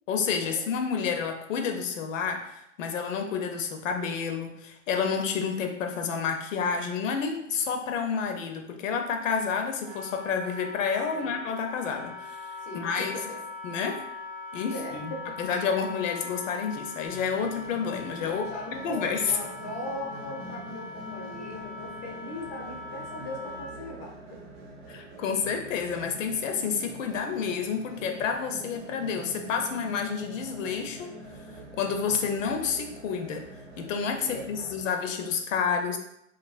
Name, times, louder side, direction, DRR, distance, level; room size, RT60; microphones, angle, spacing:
voice 1, 0.1-2.5 2.8-13.1 13.6-14.0 14.5-15.1 15.4-18.5 18.8-19.2 24.9-31.1 31.8-33.5 33.8-36.0, left 6 dB, 85° left, 5 dB, 0.6 m, -29 dB
Wind instrument woodwind instrument, 9.8-23.9, left 3 dB, 20° right, 0.6 m, -41 dB
voice 2, 11.1-11.4 12.6-13.4 14.6-15.4 15.6-16.2 18.2-24.4 34.3-34.8, left 1 dB, 20° left, 0 dB, 0.3 m, -40 dB
sound 1, 17.1-34.8, right 1 dB, 55° right, 0.7 m, -44 dB
2.7 x 2.4 x 2.3 m, 0.79 s
hypercardioid pair, 130°, 38 cm